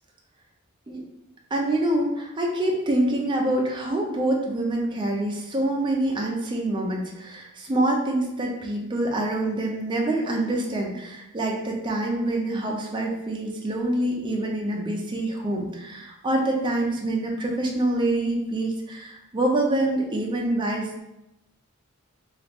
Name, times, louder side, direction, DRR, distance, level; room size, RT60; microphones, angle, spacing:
voice 1, 1.5-21.0, right 1 dB, 20° right, 0 dB, 0.4 m, -26 dB
3.0 x 2.4 x 3.4 m, 0.92 s
head